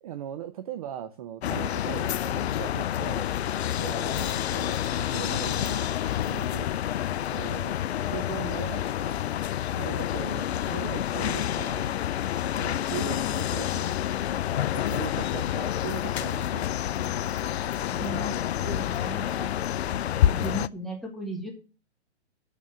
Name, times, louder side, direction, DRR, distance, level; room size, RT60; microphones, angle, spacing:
voice 1, 0.0-3.3 3.8-5.9 6.3-6.7 7.3-9.2 9.7-12.0 12.5-14.0 14.5-16.7, right 11 dB, 35° right, 12 dB, 0.5 m, -39 dB
sound 1, 1.4-20.7, left 11 dB, 65° left, 0.5 m, -28 dB
voice 2, 17.9-19.7 20.3-21.5, right 1 dB, ahead, 0 dB, 1.8 m, -36 dB
7.2 x 6.6 x 7.5 m, 0.35 s
hypercardioid pair, 140°, 34 cm